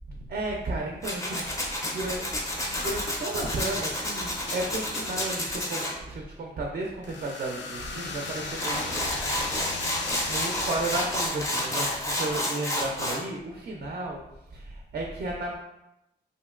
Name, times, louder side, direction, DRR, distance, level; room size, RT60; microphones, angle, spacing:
voice 1, 0.3-1.5 1.9-2.5 2.7-9.5 10.3-14.2 14.5-15.6, right 2 dB, 50° right, 0 dB, 0.4 m, -33 dB
Tools, 1.0-5.9 8.3-8.4 8.6-13.2, left 1 dB, 15° left, 0.4 m, -30 dB
sound 1, 2.8-3.0 3.4-5.6 7.0-11.3, left 3 dB, 75° left, 0.4 m, -37 dB
2.9 x 2.6 x 2.3 m, 0.90 s
wide cardioid pair, 155°, 19 cm